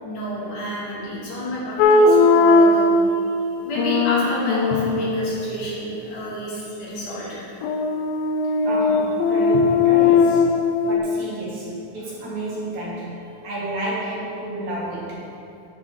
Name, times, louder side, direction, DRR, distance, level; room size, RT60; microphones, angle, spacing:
voice 1, 0.0-7.4, equal, 65° left, -8 dB, 3.4 m, -30 dB
sound 1, 1.8-3.2 3.8-5.5 7.6-11.0, left 3 dB, 85° left, 2.2 m, -18 dB
sound 2, 4.7-7.1 9.5-12.6, right 1 dB, 90° right, 3.0 m, -39 dB
voice 2, 8.6-10.5 10.8-13.1 13.4-15.2, right 1 dB, 60° right, -7 dB, 2.5 m, -30 dB
10.0 x 7.6 x 3.2 m, 2.6 s
omnidirectional pair, 4.1 m